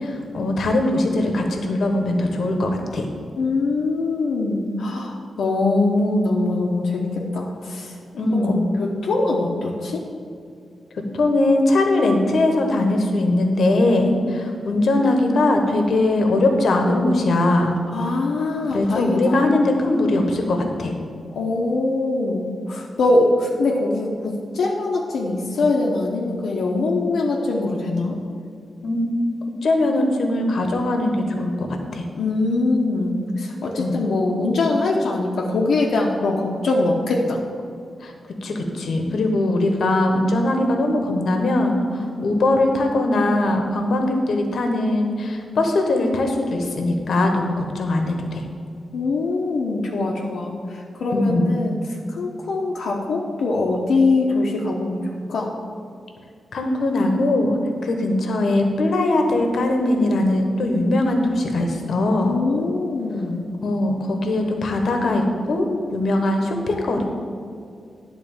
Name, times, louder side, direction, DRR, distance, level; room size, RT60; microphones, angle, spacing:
voice 1, 0.0-3.1 8.1-8.7 11.1-17.8 18.7-20.9 28.8-29.1 29.6-32.0 33.8-34.1 38.0-38.1 38.4-48.4 51.1-51.6 56.5-62.4 63.6-67.0, left 2 dB, 60° left, 3 dB, 1.1 m, -21 dB
voice 2, 3.4-7.9 8.4-8.5 9.0-10.0 14.3-14.4 17.9-19.4 21.3-24.1 24.5-28.2 32.2-37.4 48.9-51.7 52.2-55.5 62.2-63.4, left 2 dB, 75° left, -3 dB, 0.9 m, -22 dB
10.5 x 4.0 x 7.2 m, 2.4 s
wide cardioid pair, 140°, 0 cm